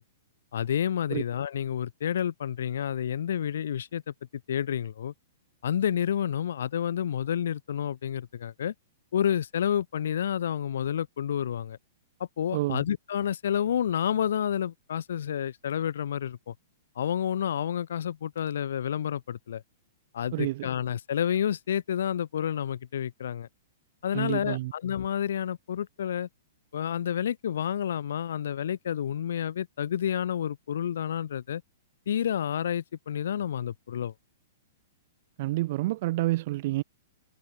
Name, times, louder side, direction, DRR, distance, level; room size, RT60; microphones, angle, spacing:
voice 1, 0.5-4.1 4.5-5.1 5.6-8.7 9.1-11.8 12.4-16.5 17.0-19.6 20.1-23.5 24.0-26.3 26.7-31.6 32.1-34.1, left 9 dB, 75° left, 2.7 m, -29 dB
voice 2, 12.5-12.8 20.3-20.7 24.1-24.7 35.4-36.8, right 18 dB, 50° right, 1.2 m, -28 dB
hypercardioid pair, 145°, 0 cm